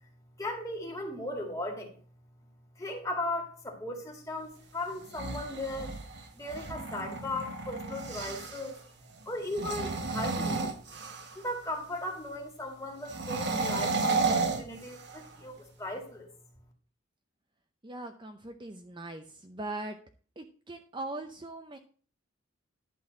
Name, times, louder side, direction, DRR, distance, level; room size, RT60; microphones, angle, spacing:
voice 1, 0.4-1.9 2.8-5.9 6.3-8.8 9.3-11.0 11.4-16.3, left 1 dB, 15° left, 1 dB, 2.1 m, -37 dB
sound 1, 4.9-8.7 9.4-11.5 13.1-15.4, right 3 dB, 55° right, 1.1 m, -32 dB
voice 2, 17.8-20.0 20.4-21.8, right 2 dB, 25° right, 6 dB, 0.6 m, -40 dB
11.0 x 3.9 x 7.5 m, 0.42 s
head